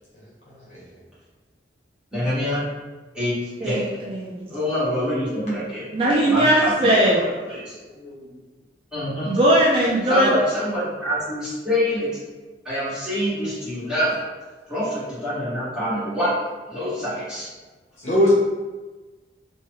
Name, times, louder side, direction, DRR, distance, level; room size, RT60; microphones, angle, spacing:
voice 1, 0.1-1.0 7.6-8.4 16.7-17.0 18.0-18.3, left 1 dB, 40° left, -8 dB, 1.2 m, -25 dB
voice 2, 2.1-2.6 3.1-4.0 4.5-5.9 6.2-7.2 7.5-7.8 8.9-9.4 10.1-12.1 12.6-14.2 14.7-16.4 16.7-17.5, equal, 5° right, -12 dB, 1.3 m, -25 dB
voice 3, 3.6-4.4 5.9-7.2 9.3-10.3, right 1 dB, 30° right, -4 dB, 0.4 m, -19 dB
3.2 x 2.2 x 3.0 m, 1.2 s
head